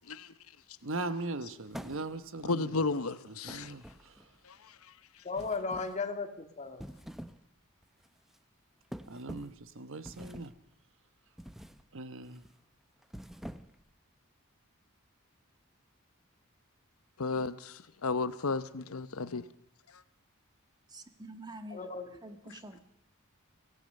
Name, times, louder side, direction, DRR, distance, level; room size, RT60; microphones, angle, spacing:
voice 1, 0.8-2.7 3.4-4.1 9.1-10.5 11.9-12.4, right 2 dB, 65° right, 1.2 m, -39 dB
sound 1, 1.7-2.4 3.5-4.4 5.4-6.0 6.7-7.5 7.8-8.1 8.9-9.6 10.1-10.6 11.4-11.8 12.2-12.5 13.0-13.9, equal, ahead, 0.7 m, -46 dB
voice 2, 2.4-3.7 4.4-4.8 17.2-19.5, left 3 dB, 80° left, 0.9 m, -33 dB
voice 3, 5.2-6.9 21.7-22.2, left 4 dB, 35° left, 2.0 m, -36 dB
voice 4, 20.9-21.8 22.2-22.8, right 1 dB, 20° right, 1.6 m, -46 dB
25.0 x 17.0 x 6.6 m
head